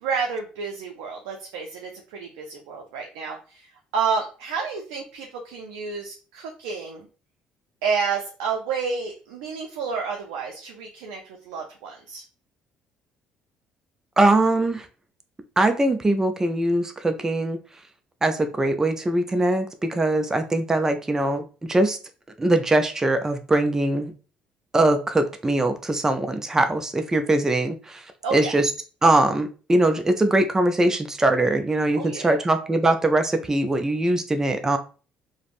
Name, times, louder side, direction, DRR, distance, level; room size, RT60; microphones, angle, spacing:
voice 1, 0.0-7.1 7.8-12.2 28.2-28.5 31.9-32.4, right 5 dB, 90° right, 1 dB, 0.4 m, -30 dB
voice 2, 14.2-14.9 15.6-17.6 18.2-22.0 22.4-24.1 24.7-28.0 28.3-28.7 29.0-34.8, right 2 dB, 15° right, 7 dB, 0.4 m, -22 dB
3.3 x 2.0 x 2.4 m, 0.36 s
supercardioid pair, 75°, 3 cm